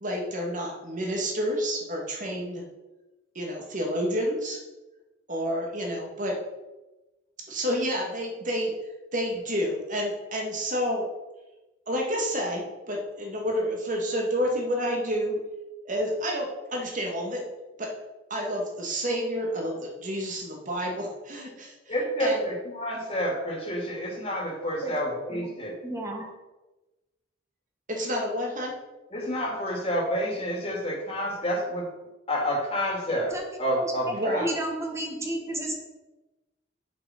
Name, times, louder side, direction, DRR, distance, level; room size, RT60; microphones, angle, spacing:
voice 1, 0.0-2.6 3.4-4.6 5.3-6.4 7.5-8.7 9.1-11.1 11.9-15.4 15.8-17.4 17.8-17.9 18.3-21.9 22.2-22.4 27.9-28.7 34.1-34.5, equal, 45° right, 1 dB, 2.1 m, -29 dB
voice 2, 21.9-25.8 29.1-31.9 32.3-34.5, equal, 35° left, -2 dB, 2.4 m, -29 dB
voice 3, 25.8-26.3 33.3-33.4 33.8-33.9 34.4-35.8, right 1 dB, 15° right, 1 dB, 1.7 m, -32 dB
7.6 x 6.4 x 5.8 m, 1.1 s
head